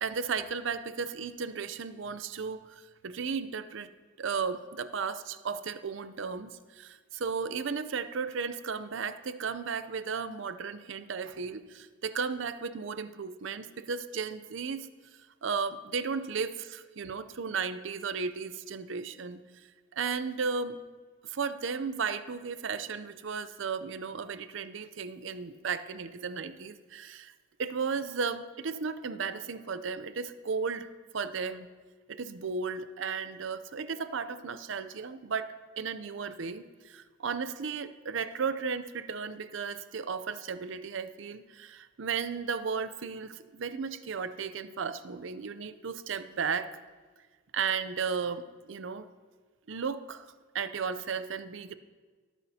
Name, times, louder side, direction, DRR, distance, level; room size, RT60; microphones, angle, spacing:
voice 1, 0.0-3.9 4.2-14.9 15.4-19.4 19.9-20.8 21.2-27.3 27.6-30.9 31.1-31.7 32.1-46.7 47.5-49.1 49.7-51.7, right 5 dB, 65° right, 12 dB, 0.5 m, -35 dB
17.5 x 9.2 x 2.8 m, 1.4 s
head